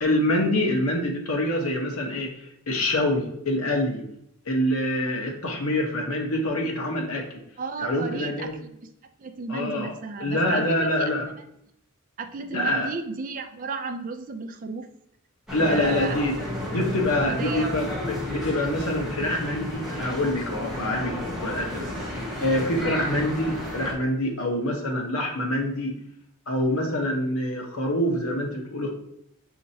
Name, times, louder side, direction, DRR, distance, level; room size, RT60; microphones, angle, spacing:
voice 1, 0.0-4.0 4.4-7.4 7.8-8.5 9.5-9.9 10.2-11.3 12.5-12.9 15.5-16.4 16.7-21.9 22.4-25.9 26.5-28.9, left 1 dB, 75° left, 1 dB, 0.9 m, -26 dB
voice 2, 7.6-8.7 9.2-11.1 11.4-11.5 12.2-14.9 15.6-16.2 17.2-17.7, right 4 dB, 40° right, 7 dB, 0.3 m, -33 dB
sound 1, 15.5-23.9, left 1 dB, ahead, 0.9 m, -32 dB
6.3 x 2.8 x 2.7 m, 0.75 s
head